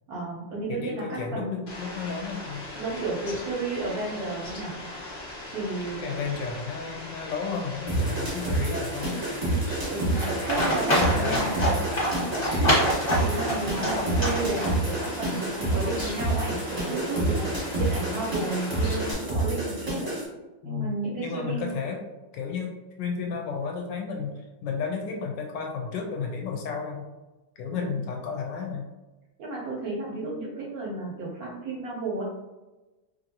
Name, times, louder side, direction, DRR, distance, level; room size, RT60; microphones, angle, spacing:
voice 1, 0.1-1.6 2.8-4.8 5.5-6.0 9.8-11.7 13.2-20.2 20.6-21.7 27.7-28.0 29.4-32.2, right 2 dB, 65° right, -4 dB, 0.9 m, -33 dB
voice 2, 0.7-2.7 6.0-9.2 11.0-11.8 20.6-22.0 22.3-27.1 27.6-28.9, left 5 dB, 75° left, 1 dB, 1.2 m, -33 dB
Fowl, 1.7-19.1, left 1 dB, 90° left, 0.5 m, -39 dB
sound 1, 7.9-20.3, right 2 dB, 30° right, 0.7 m, -29 dB
Livestock farm animals working animals, 10.1-15.1, equal, 25° left, 1.1 m, -26 dB
2.9 x 2.6 x 2.7 m, 1.1 s
omnidirectional pair, 2.1 m